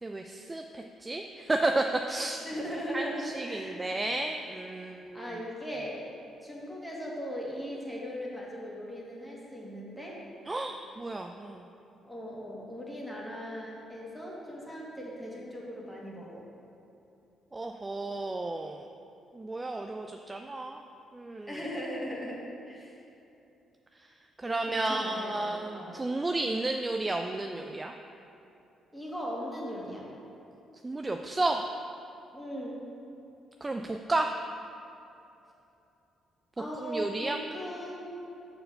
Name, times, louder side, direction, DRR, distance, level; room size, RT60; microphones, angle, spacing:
voice 1, 0.0-2.4 2.9-5.3 10.5-11.6 17.5-18.9 19.3-20.8 21.1-21.6 24.4-27.9 30.8-31.6 33.6-34.3 36.8-37.4, right 2 dB, 20° right, 4 dB, 0.4 m, -32 dB
voice 2, 2.4-3.8 5.1-6.0 6.4-10.2 12.0-16.4 21.5-22.9 24.4-26.0 28.9-30.1 32.3-32.8 36.6-38.1, equal, ahead, -5 dB, 1.8 m, -38 dB
6.6 x 4.4 x 6.6 m, 2.8 s
cardioid pair, 90°, 0 cm